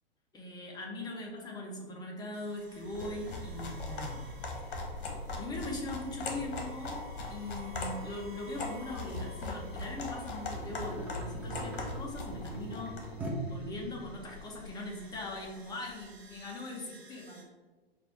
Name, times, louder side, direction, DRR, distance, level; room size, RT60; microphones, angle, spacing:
voice 1, 0.3-4.2 5.4-13.0 13.5-17.4, left 2 dB, 15° left, -1 dB, 0.8 m, -41 dB
sound 1, 2.3-17.4, left 1 dB, 80° right, 1.4 m, -52 dB
sound 2, 2.8-13.2, left 2 dB, 60° left, 1.1 m, -40 dB
sound 3, 10.5-14.4 15.1-15.2, right 2 dB, 5° right, 0.3 m, -41 dB
4.3 x 2.7 x 4.4 m, 1.3 s
figure-of-eight pair, 105°, 30 cm